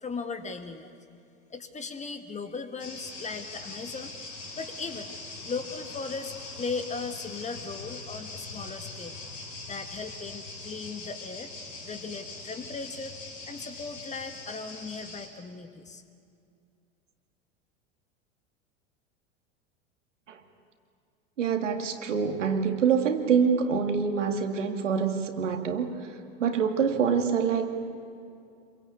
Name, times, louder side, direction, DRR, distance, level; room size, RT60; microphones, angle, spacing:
voice 1, 0.0-1.0 1.5-4.1 4.6-5.2 5.4-9.2 9.7-11.5 11.8-13.1 13.4-16.0, left 4 dB, 20° left, 8 dB, 1.9 m, -37 dB
sound 1, 2.8-15.3, left 3 dB, 80° left, 5.3 m, -42 dB
voice 2, 21.4-25.9 26.4-27.8, right 6 dB, 75° right, 5 dB, 2.3 m, -25 dB
26.0 x 23.0 x 8.5 m, 2.4 s
figure-of-eight pair, 85°, 37 cm